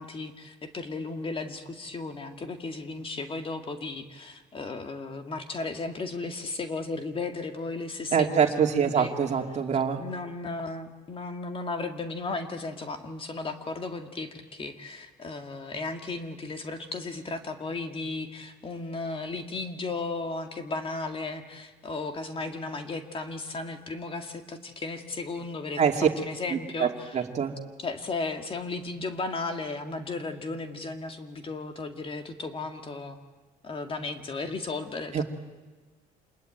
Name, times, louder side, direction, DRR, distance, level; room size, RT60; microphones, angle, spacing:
voice 1, 0.0-9.1 10.0-27.2 27.8-33.2 33.6-35.2, left 3 dB, 30° left, 6 dB, 2.2 m, -35 dB
voice 2, 8.1-10.0 25.8-26.1 26.5-26.9 27.1-27.6 35.1-35.2, right 7 dB, 40° right, 3 dB, 2.6 m, -24 dB
27.0 x 20.5 x 9.1 m, 1.3 s
cardioid pair, 110°, 17 cm